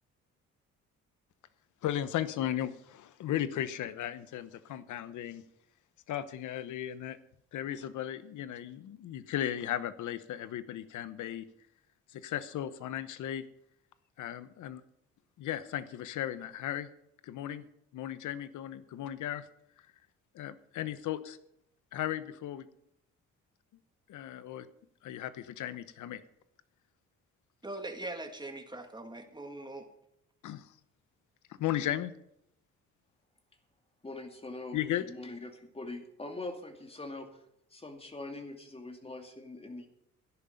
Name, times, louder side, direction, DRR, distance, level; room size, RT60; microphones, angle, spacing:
voice 1, 1.8-5.4 6.1-7.2 7.5-11.5 12.1-13.4 14.2-14.8 15.4-16.9 17.2-17.6 17.9-19.4 20.3-21.4 21.9-22.7 24.1-24.7 25.0-26.2 30.4-30.7 31.6-32.1 34.7-35.0, left 11 dB, 80° left, 14 dB, 1.0 m, -36 dB
voice 2, 27.6-29.9, right 2 dB, 15° right, 5 dB, 2.2 m, -41 dB
voice 3, 34.0-34.8 35.1-37.3 37.7-39.9, left 2 dB, 20° left, 5 dB, 2.5 m, -42 dB
13.0 x 10.5 x 5.3 m, 0.76 s
cardioid pair, 90°, 30 cm